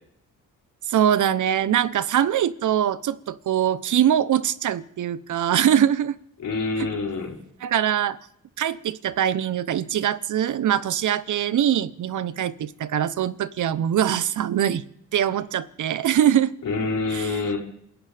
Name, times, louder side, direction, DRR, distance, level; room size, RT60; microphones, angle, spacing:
voice 1, 0.9-6.2 6.8-6.9 7.6-8.2 8.6-14.8 15.1-16.5 17.1-17.4, right 10 dB, 70° right, 16 dB, 0.9 m, -23 dB
voice 2, 6.4-7.4 16.6-17.6, left 3 dB, 75° left, -2 dB, 5.0 m, -26 dB
27.5 x 15.0 x 3.5 m, 0.72 s
cardioid pair, 80°, 31 cm